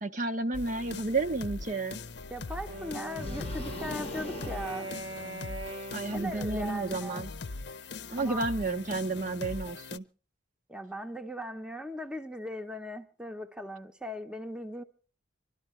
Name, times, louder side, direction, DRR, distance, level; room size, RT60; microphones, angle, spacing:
voice 1, 0.0-2.0 5.9-7.3 8.1-10.0, right 3 dB, 45° right, 0.8 m, -31 dB
sound 1, 0.5-10.0, left 3 dB, 65° left, 0.6 m, -41 dB
voice 2, 2.3-4.9 6.1-7.3 8.1-8.4 10.7-14.8, equal, 5° right, 0.9 m, -39 dB
Wind instrument woodwind instrument, 2.7-7.7, right 1 dB, 80° right, 1.7 m, -42 dB
sound 2, 3.2-5.6, left 2 dB, 35° left, 0.8 m, -41 dB
25.5 x 13.0 x 3.2 m
head